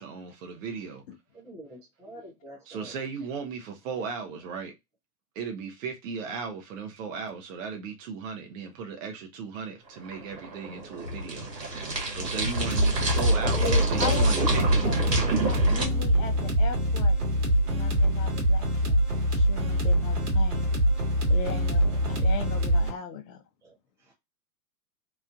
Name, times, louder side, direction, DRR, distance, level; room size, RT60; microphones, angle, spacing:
voice 1, 0.0-1.0 2.6-4.7 5.3-14.9, right 5 dB, 55° right, 0.8 m, -36 dB
voice 2, 1.3-2.9 17.9-18.0 23.6-23.7 24.1-24.2, right 1 dB, 5° right, 0.4 m, -47 dB
sound 1, 9.9-15.9, right 2 dB, 90° right, 1.4 m, -29 dB
sound 2, 12.5-22.9, equal, 70° right, 1.5 m, -24 dB
voice 3, 13.6-17.2 17.6-20.7 21.3-23.4, left 6 dB, 55° left, 0.7 m, -38 dB
3.1 x 2.4 x 2.2 m
hypercardioid pair, 115°, 48 cm